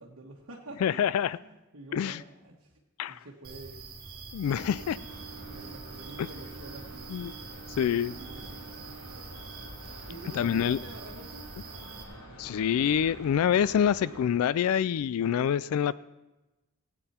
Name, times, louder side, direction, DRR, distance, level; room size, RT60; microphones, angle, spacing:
voice 1, 0.0-1.1 1.4-2.7 3.1-3.8 5.4-7.3 7.7-8.9 10.1-11.5, right 2 dB, 75° right, -4 dB, 1.4 m, -47 dB
voice 2, 0.8-1.4 1.9-2.2 3.0-3.3 4.3-5.0 6.2-6.3 7.1-7.3 7.8-8.2 10.3-10.8 12.4-15.9, left 9 dB, 90° left, 18 dB, 0.3 m, -26 dB
sound 1, 3.4-12.0, right 4 dB, 45° right, 2.4 m, -45 dB
sound 2, 4.4-14.2, right 2 dB, 65° left, 4.7 m, -46 dB
16.5 x 9.1 x 4.3 m, 1.0 s
head